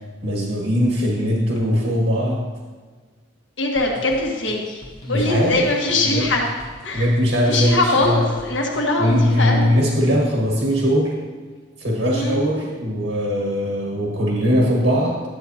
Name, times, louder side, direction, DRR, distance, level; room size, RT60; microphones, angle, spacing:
voice 1, 0.2-2.4 5.1-5.6 6.0-6.3 6.9-8.2 9.0-11.2 11.8-15.2, equal, 75° right, -4 dB, 1.7 m, -20 dB
voice 2, 3.6-4.8 5.1-6.4 6.8-7.1 7.5-9.7 12.1-12.4, left 2 dB, 70° left, -1 dB, 1.4 m, -21 dB
sound 1, 3.8-9.4, left 1 dB, 20° left, 1.0 m, -42 dB
11.5 x 7.7 x 2.8 m, 1.4 s
head